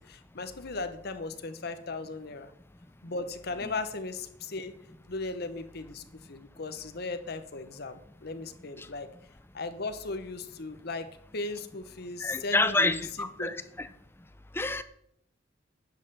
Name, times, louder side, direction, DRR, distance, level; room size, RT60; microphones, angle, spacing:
voice 1, 0.1-2.5 3.0-4.7 5.1-6.0 6.3-9.1 9.5-11.1 11.3-13.0 13.4-13.5, left 3 dB, 55° left, 9 dB, 1.0 m, -37 dB
voice 2, 12.2-13.9 14.5-14.8, left 2 dB, 10° left, 12 dB, 0.6 m, -28 dB
10.5 x 5.6 x 6.9 m, 0.71 s
head